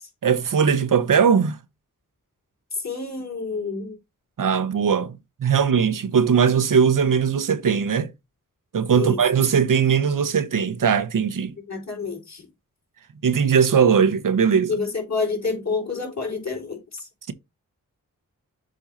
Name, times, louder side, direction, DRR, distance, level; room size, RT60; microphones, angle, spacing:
voice 1, 0.2-1.6 4.4-5.1 5.4-8.1 8.7-11.5 13.2-14.7, right 7 dB, 70° right, 0.9 m, -19 dB
voice 2, 2.8-4.0 8.9-9.2 11.7-12.5 14.7-17.1, left 4 dB, 55° left, 4.1 m, -28 dB
7.6 x 2.8 x 5.1 m
cardioid pair, 40°, 33 cm